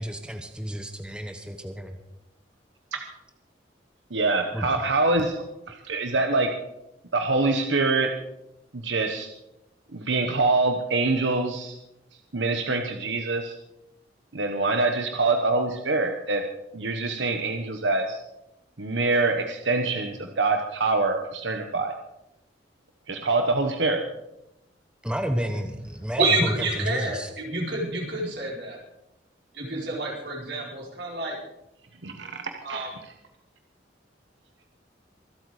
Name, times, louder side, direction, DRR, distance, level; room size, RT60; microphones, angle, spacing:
voice 1, 0.0-2.0 4.5-4.8 25.0-27.3, equal, 5° right, 6 dB, 1.0 m, -31 dB
voice 2, 4.1-6.5 7.1-8.1 8.7-9.3 9.9-11.8 12.3-13.5 14.3-16.4 16.7-18.2 18.8-21.9 23.1-24.0 32.0-32.4 32.7-33.1, right 3 dB, 85° right, 5 dB, 1.2 m, -25 dB
voice 3, 26.2-28.8 29.5-31.4 32.6-32.9, right 2 dB, 65° right, -2 dB, 4.5 m, -28 dB
24.5 x 8.2 x 4.9 m, 0.87 s
head